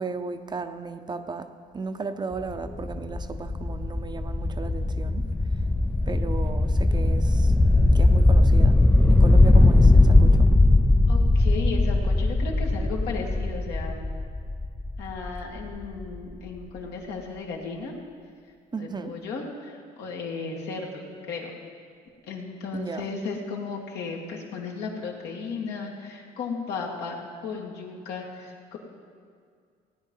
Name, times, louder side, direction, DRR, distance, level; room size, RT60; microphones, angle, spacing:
voice 1, 0.0-5.3 6.1-7.5 7.9-8.8 9.1-10.5 18.7-19.2 22.7-23.1, right 4 dB, 25° right, 9 dB, 0.7 m, -35 dB
sound 1, 2.3-16.1, left 2 dB, 10° left, 0.4 m, -20 dB
voice 2, 11.1-14.0 15.0-17.9 18.8-21.5 22.3-27.2 27.4-28.8, left 4 dB, 80° left, -1 dB, 2.3 m, -35 dB
17.0 x 9.2 x 5.5 m, 2.1 s
cardioid pair, 110°, 17 cm